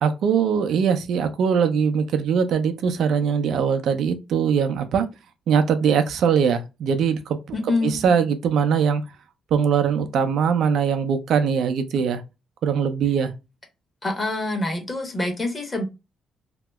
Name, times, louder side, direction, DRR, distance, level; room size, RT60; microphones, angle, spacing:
voice 1, 0.0-5.1 5.5-7.4 7.8-9.0 9.5-12.2 12.6-13.3, right 7 dB, 70° right, 0.5 m, -21 dB
voice 2, 7.5-8.3 14.0-15.8, left 2 dB, 25° left, 1.1 m, -26 dB
2.8 x 2.0 x 3.4 m
cardioid pair, 90°, 0 cm